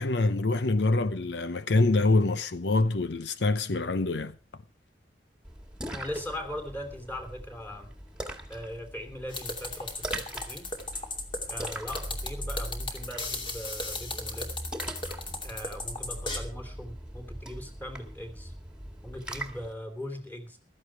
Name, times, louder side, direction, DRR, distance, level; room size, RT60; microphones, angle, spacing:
voice 1, 0.0-4.3, left 2 dB, 75° left, 0.7 m, -25 dB
Splash splatter, 5.4-19.7, right 1 dB, 5° right, 2.1 m, -40 dB
voice 2, 5.9-7.9 8.5-10.7 11.5-14.5 15.4-18.5 19.0-20.6, left 1 dB, 10° left, 3.1 m, -40 dB
sound 1, 9.3-16.4, left 2 dB, 30° left, 2.6 m, -35 dB
15.5 x 13.0 x 4.7 m
head